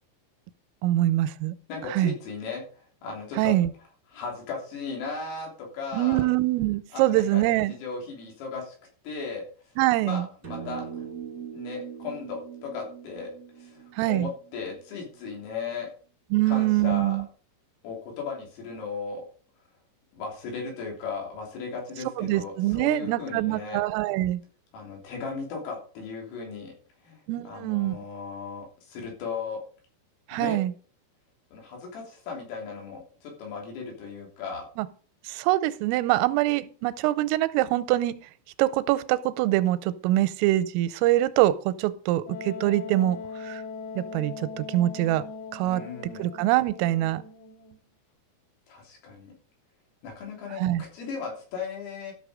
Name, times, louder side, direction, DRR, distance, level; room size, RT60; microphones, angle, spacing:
voice 1, 0.8-1.5 1.9-2.1 3.4-3.7 5.9-7.7 9.8-10.3 14.0-14.3 16.3-17.2 22.2-24.4 27.3-28.0 30.3-30.7 34.8-34.9 35.3-38.2 38.6-43.2 43.5-43.6 44.0-45.2 45.5-45.8 46.2-47.2 50.6-50.8, right 15 dB, 90° right, 15 dB, 3.3 m, -24 dB
voice 2, 1.7-3.5 4.1-6.3 6.9-8.8 9.0-9.5 10.0-11.1 11.5-15.9 16.5-17.2 17.8-19.2 20.1-23.8 24.7-26.7 27.0-29.6 30.3-30.6 31.5-34.7 45.6-46.3 48.7-49.3 50.0-52.1, left 5 dB, 90° left, 0 dB, 5.9 m, -36 dB
sound 1, 10.4-15.0, right 8 dB, 45° right, 1.0 m, -41 dB
Wind instrument woodwind instrument, 42.3-47.8, left 4 dB, 65° left, 3.9 m, -40 dB
13.0 x 6.5 x 5.0 m, 0.42 s
omnidirectional pair, 5.7 m